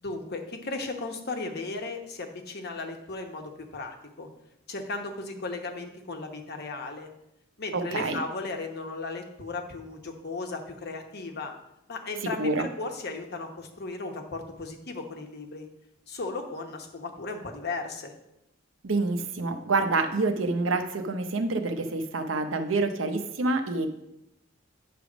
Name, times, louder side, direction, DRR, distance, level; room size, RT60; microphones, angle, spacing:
voice 1, 0.0-4.3 4.7-7.1 7.6-11.5 11.9-15.7 16.1-18.1, left 3 dB, 55° left, 3 dB, 1.0 m, -36 dB
voice 2, 7.7-8.2 12.4-12.7 18.8-23.9, right 3 dB, 75° right, 6 dB, 0.8 m, -27 dB
8.9 x 3.4 x 6.1 m, 0.86 s
head